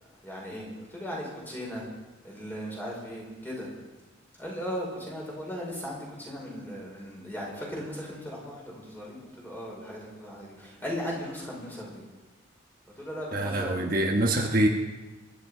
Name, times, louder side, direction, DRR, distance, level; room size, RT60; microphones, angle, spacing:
voice 1, 0.2-1.9 2.2-3.7 4.4-12.0 13.0-13.8, equal, 10° left, -3 dB, 4.9 m, -37 dB
voice 2, 13.3-14.7, right 1 dB, 45° right, 1 dB, 1.2 m, -25 dB
24.0 x 11.0 x 5.0 m, 1.2 s
head